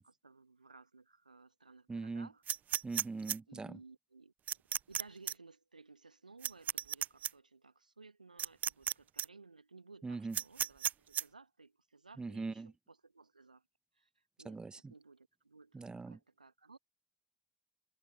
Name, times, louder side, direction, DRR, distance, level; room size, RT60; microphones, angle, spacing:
voice 1, 0.0-2.4 3.5-4.3 4.9-13.6 14.0-14.1 14.4-14.6 14.9-15.8 16.1-16.8, right 3 dB, 85° right, 1.7 m, -58 dB
voice 2, 1.9-2.3 2.8-3.8 10.0-10.4 12.2-12.7 14.4-14.9 15.7-16.2, right 3 dB, 20° right, 1.4 m, -41 dB
sound 1, 2.5-3.4 4.5-5.0 5.3-5.4 6.4-7.3 8.4-8.9 9.2-9.3 10.3-11.2, right 10 dB, 40° right, 0.6 m, -34 dB
figure-of-eight pair, 55°, 4 cm